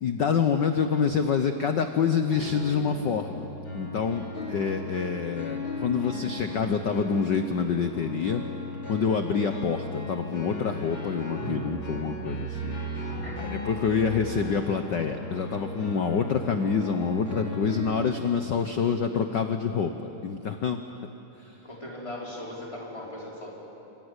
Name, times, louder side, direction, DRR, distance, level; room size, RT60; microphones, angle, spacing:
voice 1, 0.0-3.5 3.7-8.4 8.9-12.8 13.4-19.9 20.2-20.8, left 6 dB, 80° left, 7 dB, 1.0 m, -27 dB
sound 1, 2.3-18.1, left 1 dB, 45° left, 3.5 m, -36 dB
voice 2, 21.6-23.5, left 1 dB, 10° left, -4 dB, 4.9 m, -38 dB
26.5 x 25.0 x 8.2 m, 2.9 s
omnidirectional pair, 3.3 m